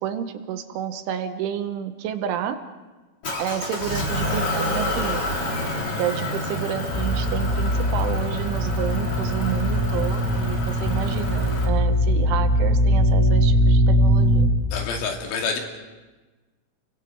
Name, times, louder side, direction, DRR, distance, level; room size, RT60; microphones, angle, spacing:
voice 1, 0.0-2.6 3.4-5.2 6.0-14.5, right 10 dB, 75° right, 7 dB, 3.3 m, -30 dB
Motor vehicle (road) / Engine, 3.2-11.6, left 1 dB, 30° left, 3.3 m, -29 dB
sound 1, 6.9-14.5, equal, 10° left, 2.2 m, -21 dB
voice 2, 14.7-15.6, left 5 dB, 70° left, 1 dB, 4.8 m, -27 dB
29.5 x 23.5 x 4.7 m, 1.2 s
omnidirectional pair, 5.9 m